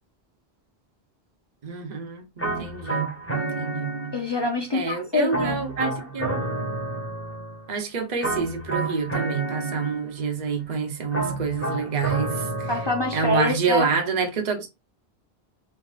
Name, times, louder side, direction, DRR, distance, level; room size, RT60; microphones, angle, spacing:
voice 1, 1.6-3.9 4.7-6.4 7.7-12.7 13.1-14.7, right 4 dB, 45° right, 0.9 m, -27 dB
sound 1, 2.4-4.5 5.3-7.7 8.2-10.3 11.1-13.5, right 2 dB, 10° left, 1.3 m, -30 dB
voice 2, 4.1-5.7 12.7-13.9, left 2 dB, 35° left, 0.4 m, -25 dB
3.7 x 2.8 x 2.4 m
omnidirectional pair, 1.1 m